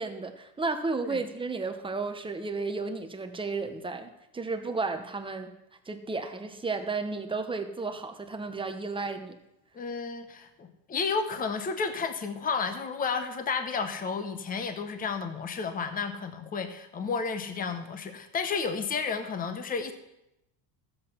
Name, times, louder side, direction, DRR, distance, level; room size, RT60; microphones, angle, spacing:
voice 1, 0.0-5.5 5.9-9.4, right 3 dB, 10° right, 6 dB, 0.9 m, -33 dB
voice 2, 9.7-19.9, left 5 dB, 15° left, 9 dB, 0.9 m, -32 dB
13.0 x 8.0 x 5.7 m, 0.88 s
cardioid pair, 140°, 50 cm